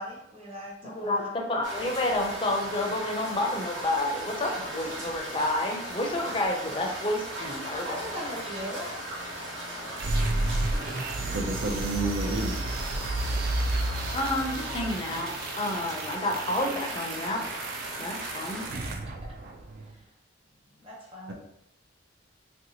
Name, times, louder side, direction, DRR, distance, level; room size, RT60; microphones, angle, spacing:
voice 1, 0.0-1.5 4.4-4.5 7.8-8.9 18.7-19.0 20.8-21.3, equal, 30° right, -5 dB, 0.7 m, -39 dB
voice 2, 0.8-8.0 14.1-17.4 18.0-18.7, left 1 dB, 25° left, 1 dB, 0.4 m, -30 dB
sound 1, 1.6-18.7, right 1 dB, 75° right, 1.1 m, -38 dB
sound 2, 10.0-19.9, right 2 dB, 50° right, 0.3 m, -32 dB
voice 3, 11.3-12.6 21.3-21.4, right 2 dB, 90° right, 1 dB, 0.6 m, -31 dB
3.3 x 2.7 x 2.8 m, 0.81 s
head